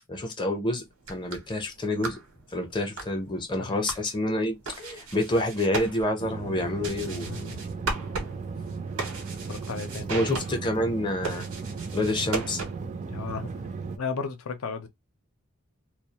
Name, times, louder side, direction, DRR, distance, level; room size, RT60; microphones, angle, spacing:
voice 1, 0.1-0.8 1.1-2.2 2.5-7.3 10.1-11.5 11.9-12.6, left 1 dB, 20° left, 0.5 m, -28 dB
sound 1, 0.9-13.0, right 3 dB, 80° right, 0.9 m, -38 dB
voice 2, 3.6-3.9 7.2-7.6 9.5-10.1 13.1-13.5 14.0-14.9, left 5 dB, 75° left, 0.5 m, -34 dB
sound 2, 6.2-14.0, right 4 dB, 35° right, 0.3 m, -36 dB
2.2 x 2.1 x 2.7 m
head